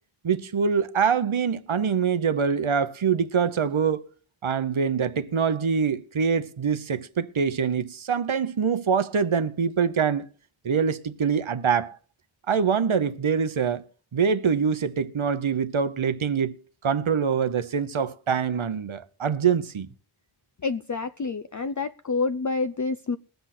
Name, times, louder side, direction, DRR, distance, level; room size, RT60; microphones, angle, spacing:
voice 1, 0.2-4.0 4.4-10.3 10.6-12.0 12.5-13.8 14.1-16.6 16.8-19.9, right 6 dB, 75° right, 0.9 m, -24 dB
voice 2, 20.6-23.2, left 4 dB, 40° left, 0.5 m, -28 dB
20.5 x 8.0 x 4.3 m
wide cardioid pair, 50°, 48 cm